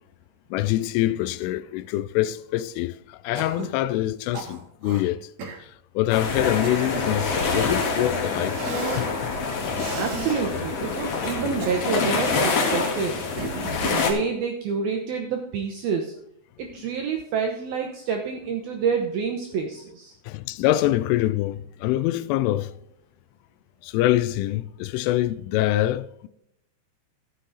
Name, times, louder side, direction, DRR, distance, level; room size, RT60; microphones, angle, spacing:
voice 1, 0.5-5.2 6.0-8.6 9.0-9.1 20.3-22.7 23.8-26.3, left 14 dB, 85° left, 3.0 m, -25 dB
Cough, 3.4-3.8 4.3-5.0 5.4-5.6 6.4-7.5 8.5-9.1 9.7-10.4 11.4-12.2 13.4-13.9, right 4 dB, 60° right, 2.1 m, -35 dB
sound 1, 6.1-14.1, left 4 dB, 65° left, 1.7 m, -26 dB
voice 2, 9.9-13.2 13.8-16.1 16.6-20.1, right 6 dB, 85° right, 2.1 m, -28 dB
13.5 x 7.5 x 4.0 m
omnidirectional pair, 5.7 m